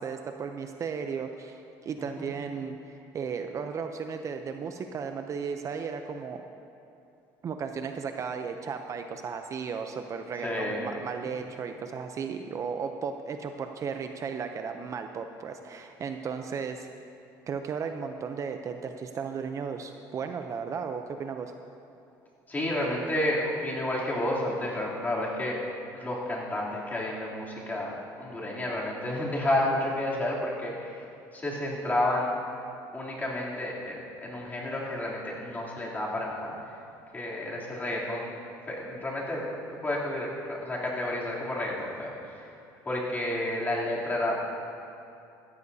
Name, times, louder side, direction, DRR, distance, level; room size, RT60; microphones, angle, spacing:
voice 1, 0.0-6.4 7.4-16.9 17.5-21.5, right 6 dB, 40° right, 6 dB, 0.6 m, -35 dB
voice 2, 10.4-10.9 22.5-25.6 25.9-31.0 31.3-32.3 32.9-36.7 37.1-38.3 38.7-39.5 39.8-42.5 42.8-44.4, left 1 dB, 20° left, -5 dB, 3.1 m, -31 dB
16.5 x 13.5 x 2.8 m, 2.8 s
cardioid pair, 110°, 8 cm